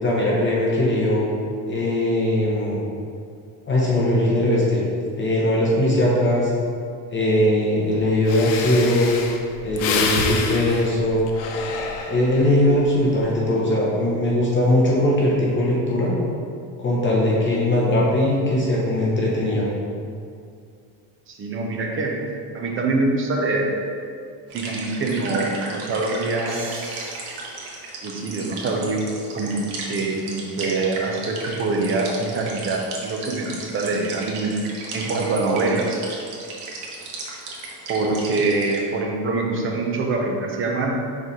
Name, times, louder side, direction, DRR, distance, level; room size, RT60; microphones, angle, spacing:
voice 1, 0.0-1.2 1.7-2.8 3.7-4.8 5.2-6.5 7.1-9.1 9.6-11.3 12.1-16.1 16.8-19.7, left 1 dB, 30° left, -5 dB, 0.9 m, -20 dB
Breathing, 7.9-8.0 8.2-12.5 13.0-13.3, left 5 dB, 85° left, 0.8 m, -27 dB
voice 2, 21.3-22.3 22.5-23.8 24.5-26.7 28.0-29.0 29.3-34.5 34.9-36.0 37.9-41.0, right 3 dB, 30° right, 1 dB, 0.7 m, -24 dB
sound 1, 24.5-38.8, right 3 dB, 90° right, 1.2 m, -35 dB
sound 2, 26.5-29.1, right 2 dB, 50° right, 1.2 m, -42 dB
4.7 x 4.1 x 5.2 m, 2.4 s
cardioid pair, 155°, 40 cm